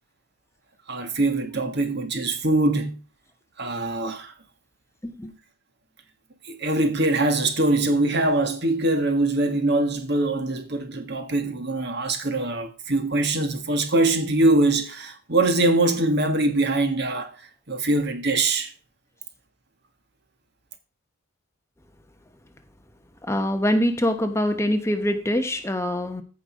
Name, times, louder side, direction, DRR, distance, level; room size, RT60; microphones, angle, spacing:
voice 1, 0.9-3.0 3.6-4.3 6.4-17.3 17.7-18.7, right 2 dB, 55° right, 1.8 m, -23 dB
voice 2, 23.3-26.2, equal, 15° left, 1.1 m, -24 dB
15.0 x 5.4 x 5.2 m
head